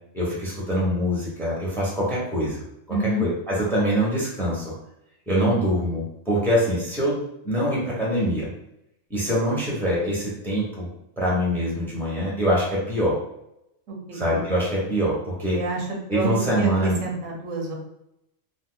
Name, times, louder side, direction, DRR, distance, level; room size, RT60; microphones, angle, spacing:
voice 1, 0.1-4.7 5.3-7.2 7.4-8.5 9.1-10.9 11.2-13.2 14.1-15.6 16.1-17.0, equal, ahead, -5 dB, 0.9 m, -24 dB
voice 2, 2.9-3.3 13.9-14.3 15.5-17.7, right 2 dB, 85° right, 0 dB, 1.2 m, -28 dB
2.8 x 2.3 x 3.7 m, 0.82 s
omnidirectional pair, 1.4 m